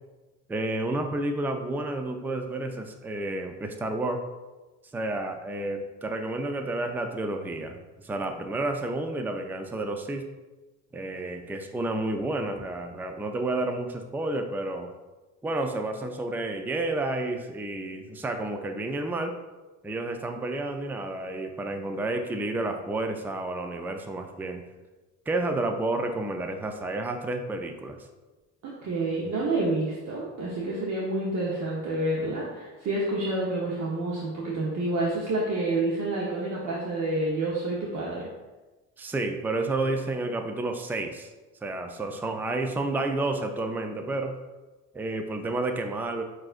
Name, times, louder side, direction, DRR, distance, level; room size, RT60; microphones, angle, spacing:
voice 1, 0.5-4.2 4.9-7.8 8.0-10.2 10.9-14.9 15.4-19.4 19.8-24.6 25.3-28.0 39.0-41.3 41.6-44.4 44.9-46.2, right 2 dB, 5° right, 5 dB, 0.4 m, -30 dB
voice 2, 28.6-38.3, right 2 dB, 50° right, -4 dB, 1.0 m, -28 dB
7.2 x 2.6 x 2.5 m, 1.2 s
supercardioid pair, 70°, 35 cm